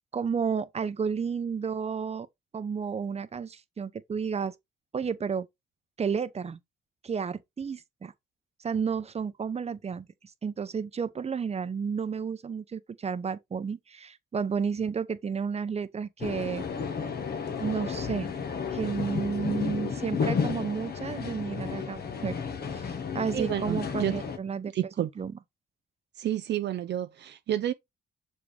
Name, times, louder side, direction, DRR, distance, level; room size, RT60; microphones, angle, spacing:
voice 1, 0.1-2.3 2.5-4.5 4.9-5.5 6.0-6.6 7.0-8.1 8.6-10.1 10.4-16.6 17.6-18.3 18.7-22.4 22.7-24.7 25.2-25.3, right 6 dB, 30° right, 0.9 m, -32 dB
Train Tube Int In Transit, 16.2-24.4, left 6 dB, 50° left, 1.6 m, -32 dB
voice 2, 23.3-24.1 24.7-25.1 26.2-27.7, right 11 dB, 60° right, 0.6 m, -30 dB
6.8 x 4.8 x 3.4 m
cardioid pair, 90°, 20 cm